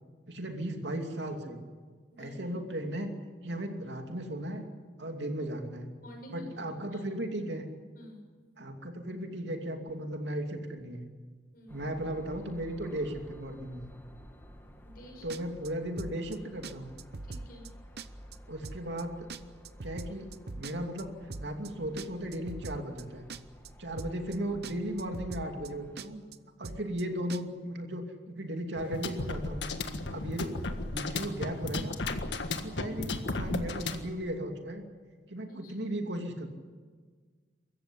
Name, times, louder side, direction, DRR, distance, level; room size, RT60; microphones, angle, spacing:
voice 1, 0.3-1.6 2.2-3.1 3.4-4.7 5.0-5.9 6.3-7.7 8.6-11.1 11.7-13.9 15.2-16.9 18.5-19.3 19.8-20.3 20.5-21.1 21.4-23.3 23.8-26.2 26.6-29.7 30.1-30.5 30.8-32.0 32.5-34.8 35.3-36.5, right 1 dB, 80° right, 4 dB, 2.8 m, -36 dB
voice 2, 2.1-2.5 6.0-7.0 7.9-8.2 11.5-11.8 14.8-15.3 17.2-17.7 30.4-30.6 35.5-35.7, left 1 dB, 55° left, 2 dB, 6.7 m, -49 dB
sound 1, 11.7-26.0, equal, 10° left, 1.9 m, -53 dB
sound 2, 15.3-15.7 16.0-16.4 16.6-16.7 17.0-17.7 18.0-18.4 18.6-19.0 19.3-21.0 21.3-21.7 22.0-23.0 23.3-23.7 24.0-24.4 24.6-24.7 25.0-25.7 26.0-26.4 26.6-27.0 27.3-27.4, right 3 dB, 60° right, 0.8 m, -41 dB
sound 3, 28.8-34.1, left 2 dB, 80° left, 1.6 m, -35 dB
24.0 x 14.5 x 9.9 m, 1.5 s
head